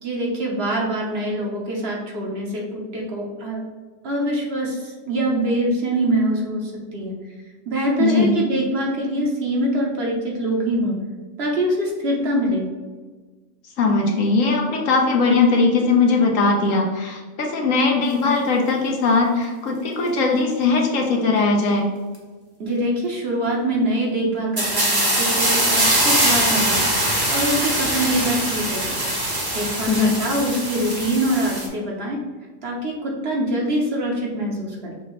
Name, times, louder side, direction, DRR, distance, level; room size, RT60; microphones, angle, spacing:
voice 1, 0.0-3.6 4.0-7.1 7.7-11.0 11.4-12.7 22.6-26.9 27.3-29.0 29.5-32.2 32.6-34.9, right 1 dB, 55° right, -1 dB, 1.1 m, -24 dB
voice 2, 8.0-8.3 13.8-21.9 29.9-30.1, left 4 dB, 75° left, 1 dB, 1.2 m, -19 dB
sound 1, 24.6-31.7, right 1 dB, 20° right, 0.7 m, -22 dB
6.1 x 2.8 x 3.1 m, 1.4 s
omnidirectional pair, 1.4 m